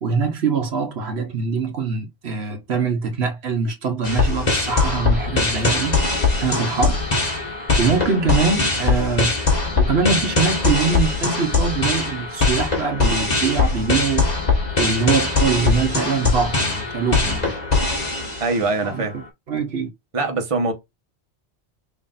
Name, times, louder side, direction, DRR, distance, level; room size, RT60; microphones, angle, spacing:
voice 1, 0.0-6.0 6.4-7.0 7.8-9.3 9.8-14.3 14.8-17.5 18.8-19.9, right 5 dB, 70° right, 1.2 m, -23 dB
sound 1, 4.0-18.8, left 3 dB, 40° left, 1.5 m, -21 dB
voice 2, 18.4-19.1 20.1-20.7, right 3 dB, 30° right, 1.1 m, -22 dB
5.6 x 3.1 x 2.5 m
omnidirectional pair, 1.1 m